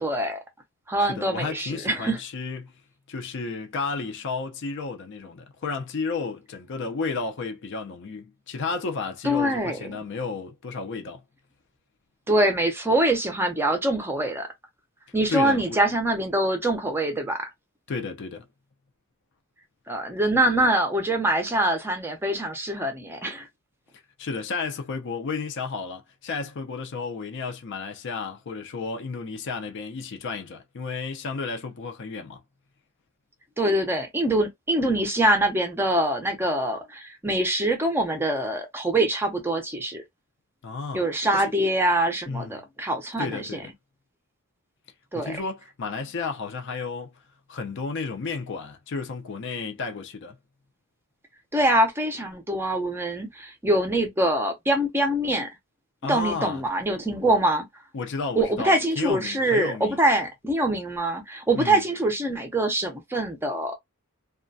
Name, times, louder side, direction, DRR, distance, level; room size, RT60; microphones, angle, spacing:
voice 1, 0.0-0.4 0.9-2.2 9.2-9.9 12.3-14.5 15.1-17.5 19.9-23.5 33.6-40.0 40.9-43.4 45.1-45.4 51.5-55.5 56.1-57.6 58.4-63.8, right 1 dB, 10° right, 0.5 m, -24 dB
voice 2, 1.0-2.7 3.1-11.2 15.3-15.8 17.9-18.5 24.2-32.4 40.6-41.0 41.3-41.5 42.3-42.6 43.2-43.7 45.1-47.1 47.5-50.4 56.0-56.6 57.9-60.0 61.5-61.8, left 4 dB, 55° left, 0.5 m, -32 dB
2.3 x 2.1 x 2.5 m
head